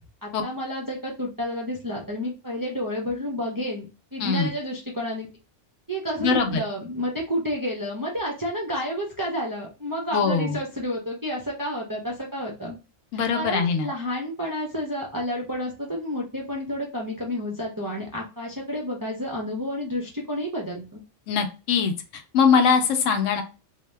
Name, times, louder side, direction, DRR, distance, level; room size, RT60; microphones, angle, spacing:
voice 1, 0.2-5.3 5.9-12.8 13.3-21.0, equal, 35° right, -2 dB, 0.3 m, -30 dB
voice 2, 6.2-6.6 10.1-10.6 13.1-13.9 21.3-23.4, left 6 dB, 90° left, 6 dB, 1.0 m, -22 dB
2.6 x 2.1 x 3.2 m, 0.31 s
omnidirectional pair, 1.3 m